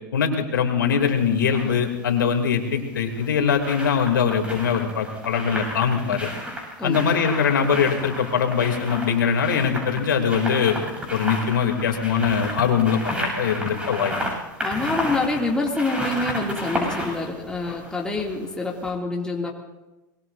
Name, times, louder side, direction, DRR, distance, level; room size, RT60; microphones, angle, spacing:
voice 1, 0.1-6.3 6.8-10.8 11.1-14.1 14.8-14.9, left 7 dB, 85° left, 3 dB, 3.0 m, -22 dB
sound 1, 1.0-1.7 3.0-18.5 18.8-18.9, equal, 10° right, 7.8 m, -32 dB
voice 2, 14.6-19.5, left 2 dB, 10° left, -2 dB, 2.6 m, -26 dB
24.5 x 21.5 x 2.7 m, 1.0 s
hypercardioid pair, 105°, 10 cm